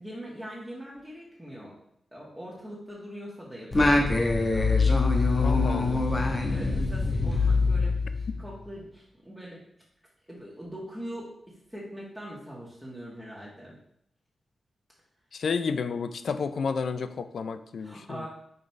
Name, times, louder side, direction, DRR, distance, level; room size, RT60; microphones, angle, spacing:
voice 1, 0.0-1.8 2.1-4.7 6.5-9.6 10.3-11.3 11.7-13.8 17.8-18.3, equal, 5° right, -7 dB, 1.8 m, -42 dB
Singing, 3.7-8.5, left 3 dB, 30° left, 1.1 m, -24 dB
voice 2, 5.4-6.1 15.3-18.3, left 5 dB, 75° left, 11 dB, 0.4 m, -31 dB
5.5 x 3.9 x 4.5 m, 0.72 s
cardioid pair, 70°, 0 cm